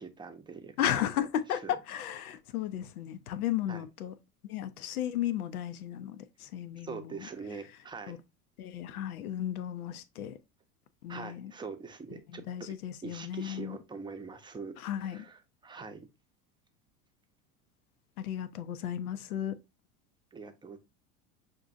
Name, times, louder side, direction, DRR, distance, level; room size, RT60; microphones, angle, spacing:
voice 1, 0.0-0.8 1.6-1.7 3.7-3.8 6.8-8.1 11.1-12.4 13.0-16.0 20.3-20.8, right 5 dB, 10° right, 0.6 m, -43 dB
voice 2, 0.8-4.1 4.4-7.3 8.1-8.2 8.6-10.4 11.0-11.5 12.3-13.8 14.8-15.3 18.2-19.6, left 11 dB, 90° left, 0.5 m, -34 dB
5.9 x 2.6 x 2.4 m
hypercardioid pair, 85°, 43 cm